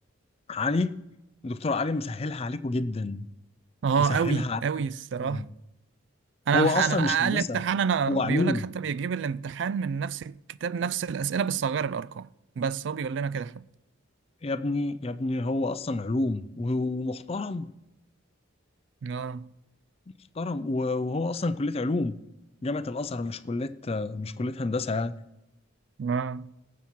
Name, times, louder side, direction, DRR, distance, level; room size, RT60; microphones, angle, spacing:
voice 1, 0.5-1.0 1.4-3.3 4.0-4.6 5.2-5.5 6.5-7.6 8.1-8.6 14.4-17.7 20.4-22.1 22.6-25.1, left 2 dB, 30° left, 0.4 m, -28 dB
voice 2, 3.8-5.5 6.5-12.3 12.6-13.6 19.0-19.5 26.0-26.5, right 6 dB, 60° right, 0.3 m, -28 dB
18.5 x 7.3 x 4.5 m
head